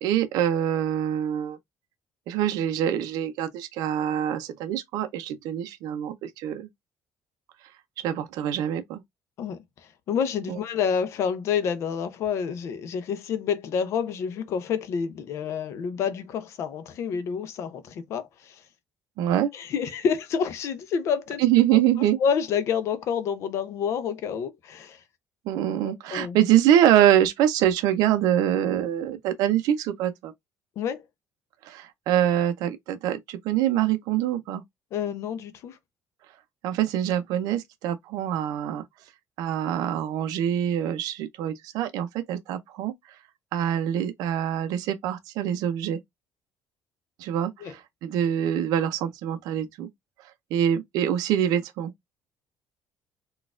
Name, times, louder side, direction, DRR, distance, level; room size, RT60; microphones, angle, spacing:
voice 1, 0.0-1.6 2.3-6.7 8.0-9.0 10.5-10.6 19.2-19.5 21.4-22.2 25.5-30.3 31.6-34.6 36.6-38.8 39.4-42.9 43.5-46.0 47.2-49.9 50.5-51.9, right 11 dB, 65° right, 0.4 m, -24 dB
voice 2, 10.1-18.6 19.5-21.4 22.2-25.0 25.8-26.4 30.8-31.0 34.9-35.8 47.6-47.7, left 7 dB, 45° left, 0.5 m, -28 dB
4.0 x 2.3 x 2.4 m
cardioid pair, 180°, 7 cm